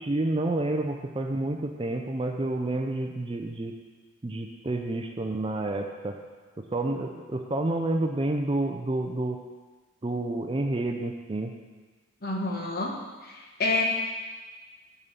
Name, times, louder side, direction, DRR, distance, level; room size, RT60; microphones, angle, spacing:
voice 1, 0.0-3.8 4.2-6.1 6.7-9.4 10.0-11.5, right 2 dB, 25° right, 4 dB, 0.4 m, -29 dB
voice 2, 12.2-13.0 13.2-13.8, left 2 dB, 45° left, 0 dB, 1.2 m, -28 dB
7.0 x 5.2 x 7.0 m, 1.3 s
head